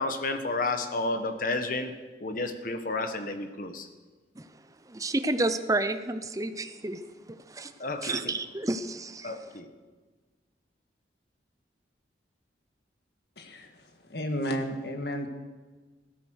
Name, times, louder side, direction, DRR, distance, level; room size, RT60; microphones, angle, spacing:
voice 1, 0.0-1.9 2.2-3.9 7.8-8.2 9.2-9.7, left 2 dB, 50° left, 1.5 m, -31 dB
voice 2, 4.9-7.0 7.3-7.7 8.0-9.3, right 2 dB, 20° right, 0.8 m, -30 dB
voice 3, 13.4-13.7 14.1-15.3, equal, 65° left, 1.8 m, -32 dB
16.0 x 13.0 x 6.5 m
head